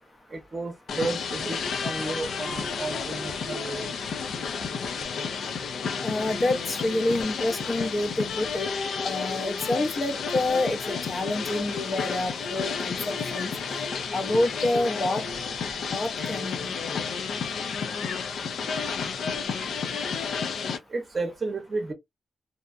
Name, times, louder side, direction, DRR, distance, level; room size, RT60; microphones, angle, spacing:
voice 1, 0.3-3.9 18.6-19.1 20.9-21.9, right 3 dB, 35° right, 0.7 m, -33 dB
sound 1, 0.9-20.8, left 5 dB, 85° left, 0.4 m, -31 dB
voice 2, 6.0-8.7 9.0-13.5 14.1-15.2 15.9-16.8, left 2 dB, 35° left, 0.5 m, -28 dB
2.6 x 2.2 x 2.4 m
wide cardioid pair, 125°, 0 cm